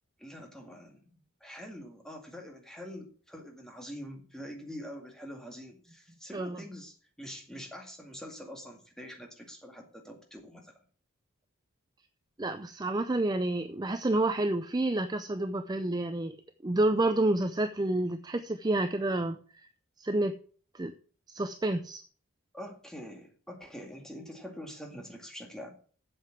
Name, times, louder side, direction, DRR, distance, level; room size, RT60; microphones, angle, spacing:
voice 1, 0.2-10.8 22.5-25.7, equal, 5° left, 2 dB, 2.1 m, -45 dB
voice 2, 12.4-16.4 16.6-19.4 20.0-20.4 20.7-20.9 21.3-22.0, right 2 dB, 20° right, 9 dB, 0.5 m, -29 dB
7.9 x 7.7 x 7.5 m, 0.43 s
head